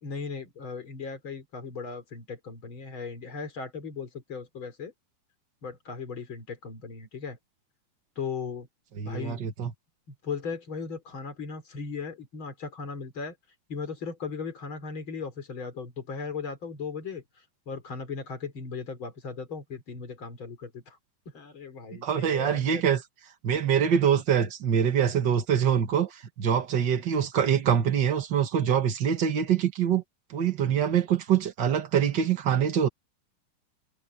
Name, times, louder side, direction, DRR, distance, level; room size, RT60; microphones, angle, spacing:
voice 1, 0.0-4.9 5.6-7.4 8.2-8.7 9.1-9.4 10.1-13.4 13.7-21.0 21.3-22.9, left 5 dB, 30° left, 3.9 m, -37 dB
voice 2, 9.0-9.7 22.0-23.0 23.4-30.0 30.3-32.9, right 8 dB, 70° right, 1.0 m, -24 dB
omnidirectional pair, 4.6 m